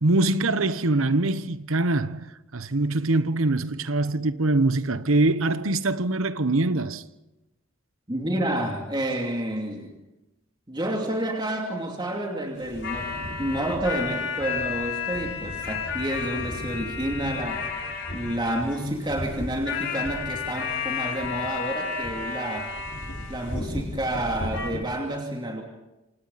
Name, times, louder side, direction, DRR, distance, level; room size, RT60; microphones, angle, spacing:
voice 1, 0.0-2.3 2.5-7.0, right 2 dB, 80° right, 1.1 m, -23 dB
voice 2, 8.1-9.9 10.7-17.7 18.1-22.8 23.3-25.6, right 1 dB, 20° right, 2.8 m, -29 dB
sound 1, 12.6-24.8, left 5 dB, 60° left, 5.2 m, -32 dB
27.5 x 27.5 x 4.2 m
head